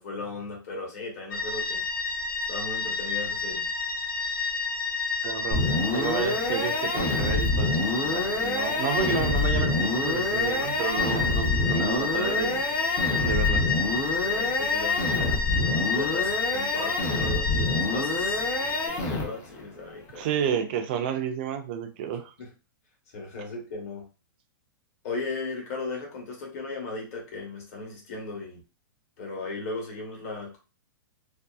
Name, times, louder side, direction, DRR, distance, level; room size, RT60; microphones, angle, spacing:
voice 1, 0.0-1.8 2.5-3.7 14.2-18.4 18.9-20.3 22.4-22.5 23.1-24.1 25.0-28.6 29.2-30.6, left 3 dB, 40° left, -1 dB, 1.1 m, -36 dB
sound 1, 1.3-18.9, left 4 dB, 65° left, 0.8 m, -30 dB
voice 2, 5.2-12.6 13.2-13.7 20.1-22.3, right 7 dB, 30° right, 7 dB, 0.3 m, -31 dB
sound 2, 5.5-19.6, left 2 dB, 25° left, 0.6 m, -27 dB
2.6 x 2.3 x 2.3 m, 0.31 s
hypercardioid pair, 170°, 12 cm